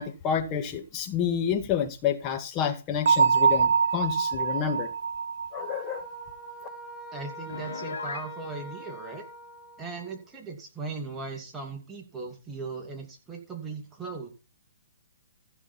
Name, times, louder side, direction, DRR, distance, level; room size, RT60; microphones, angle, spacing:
voice 1, 0.0-4.9 5.5-6.1, left 8 dB, 30° left, 6 dB, 1.8 m, -29 dB
Bell, 3.1-6.7, right 6 dB, 70° right, 1.0 m, -25 dB
sound 1, 5.8-10.2, equal, 10° left, 1.4 m, -44 dB
voice 2, 7.1-9.2 9.8-14.3, right 4 dB, 10° right, 1 dB, 2.4 m, -38 dB
Piano, 7.5-8.3, left 4 dB, 85° left, 1.7 m, -36 dB
15.0 x 6.4 x 4.3 m, 0.32 s
hypercardioid pair, 140°, 0 cm